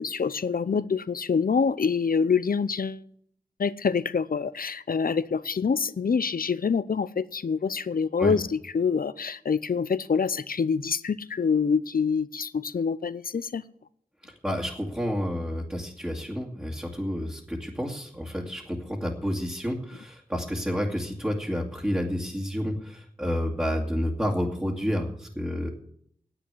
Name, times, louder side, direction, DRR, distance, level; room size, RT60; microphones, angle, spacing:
voice 1, 0.0-3.0 3.6-13.6, left 5 dB, 75° left, 0.6 m, -26 dB
voice 2, 14.2-25.7, equal, 10° right, 2.1 m, -30 dB
10.0 x 8.6 x 9.7 m
wide cardioid pair, 60°, 15 cm